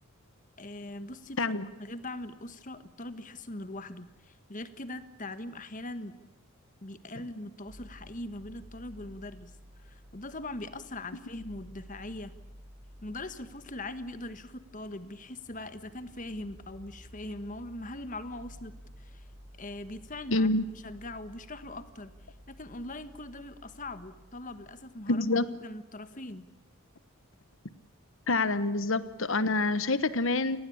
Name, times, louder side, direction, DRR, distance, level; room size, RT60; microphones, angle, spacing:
voice 1, 0.6-6.1 6.8-9.5 9.8-12.3 13.0-19.2 19.6-20.5 20.8-22.1 22.5-25.2 25.6-26.5, left 1 dB, 35° left, 12 dB, 1.4 m, -41 dB
voice 2, 1.4-1.7 20.3-20.7 25.1-25.5 28.3-30.6, left 2 dB, 60° left, 14 dB, 1.1 m, -27 dB
sound 1, 7.7-25.6, equal, 45° right, 6.3 m, -53 dB
29.5 x 19.0 x 8.6 m, 1.0 s
head